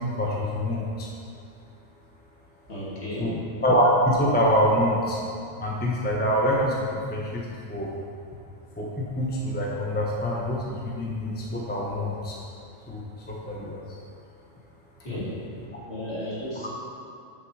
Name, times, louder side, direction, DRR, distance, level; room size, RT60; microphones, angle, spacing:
voice 1, 0.1-1.1 3.2-5.2 5.6-7.9 8.8-12.4 12.9-13.0 13.3-14.0 15.1-15.2, equal, 10° left, -3 dB, 0.9 m, -25 dB
voice 2, 2.7-3.5 15.0-15.5 15.9-16.7, left 1 dB, 55° left, -8 dB, 2.8 m, -34 dB
9.3 x 6.7 x 4.8 m, 2.5 s
omnidirectional pair, 1.4 m